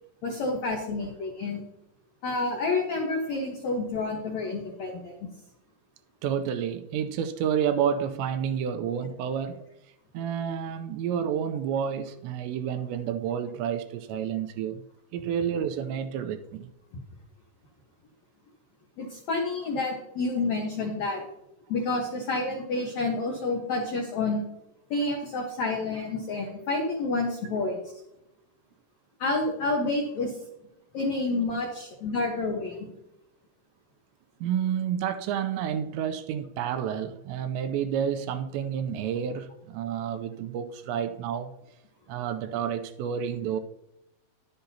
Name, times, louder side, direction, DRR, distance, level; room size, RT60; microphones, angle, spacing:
voice 1, 0.2-1.6 2.2-5.2 19.0-21.2 21.7-24.4 24.9-27.8 29.2-30.3 30.9-32.8, left 3 dB, 75° left, 1.6 m, -29 dB
voice 2, 6.2-9.6 10.1-14.8 15.1-16.7 34.4-41.5 42.1-43.6, right 8 dB, 85° right, 2.8 m, -30 dB
11.5 x 10.5 x 2.8 m
omnidirectional pair, 5.2 m